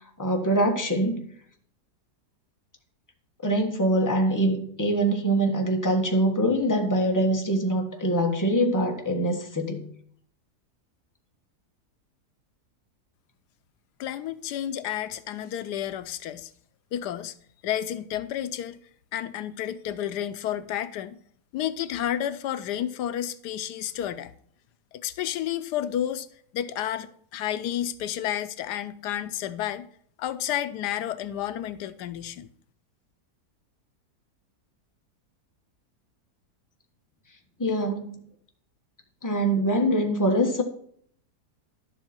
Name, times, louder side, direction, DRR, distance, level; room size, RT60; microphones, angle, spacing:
voice 1, 0.2-1.3 3.4-9.8 37.6-38.1 39.2-40.6, right 1 dB, 10° left, 1.3 m, -24 dB
voice 2, 14.0-16.5 16.9-17.3 17.6-18.8 19.1-21.2 21.5-24.3 25.0-26.3 26.5-29.9 30.2-32.5, left 11 dB, 85° left, 1.2 m, -31 dB
11.0 x 7.7 x 4.3 m
omnidirectional pair, 1.7 m